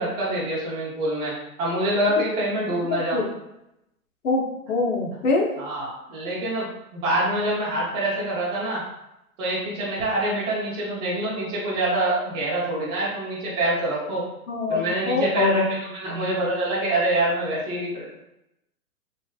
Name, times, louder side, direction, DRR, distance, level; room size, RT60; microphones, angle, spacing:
voice 1, 0.0-3.2 5.6-8.8 9.4-14.2 14.7-18.2, right 1 dB, 15° right, -7 dB, 0.5 m, -26 dB
voice 2, 4.2-5.5 14.5-16.3, left 3 dB, 60° left, -1 dB, 0.9 m, -24 dB
3.2 x 2.5 x 2.3 m, 0.85 s
hypercardioid pair, 130°, 44 cm